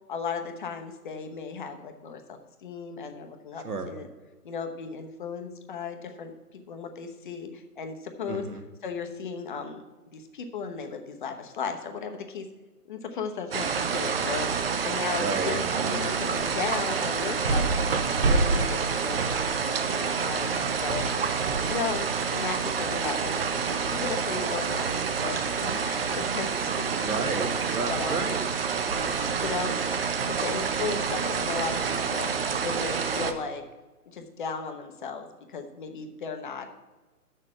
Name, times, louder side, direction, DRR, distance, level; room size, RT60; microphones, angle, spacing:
voice 1, 0.1-4.1 4.4-8.4 8.8-9.8 10.1-12.5 12.9-17.7 18.1-27.5 27.9-28.2 29.4-29.8 30.2-33.6 34.1-36.7, left 5 dB, 30° left, 6 dB, 1.0 m, -36 dB
voice 2, 8.3-8.6 15.2-15.6 18.6-18.7 26.9-28.5 28.8-29.8, right 3 dB, 70° right, 5 dB, 1.7 m, -33 dB
sound 1, 13.5-33.3, right 5 dB, 40° right, 0.7 m, -27 dB
7.3 x 6.6 x 7.7 m, 1.3 s
figure-of-eight pair, 140°, 47 cm